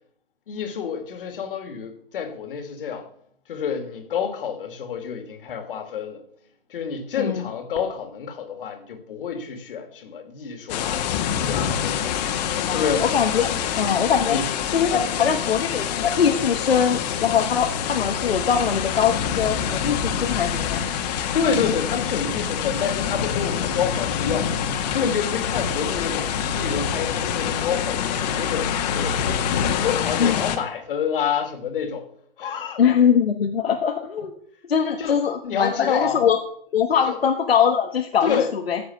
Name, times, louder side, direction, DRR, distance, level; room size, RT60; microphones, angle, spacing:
voice 1, 0.5-3.1 3.5-6.2 6.7-12.1 12.7-13.1 13.4-13.6 14.3-14.5 14.9-15.3 21.3-29.3 29.8-32.1 32.4-32.8 35.0-36.2 37.1-37.2 38.2-38.5, left 7 dB, 65° left, 2.7 m, -28 dB
sound 1, 10.7-30.6, left 8 dB, 45° left, 1.6 m, -26 dB
voice 2, 12.7-13.5 13.8-14.4 14.7-20.8 30.2-30.4 32.8-34.3 34.7-36.4 36.7-38.8, left 7 dB, 85° left, 1.4 m, -22 dB
14.5 x 5.0 x 7.3 m
hypercardioid pair, 135°, 29 cm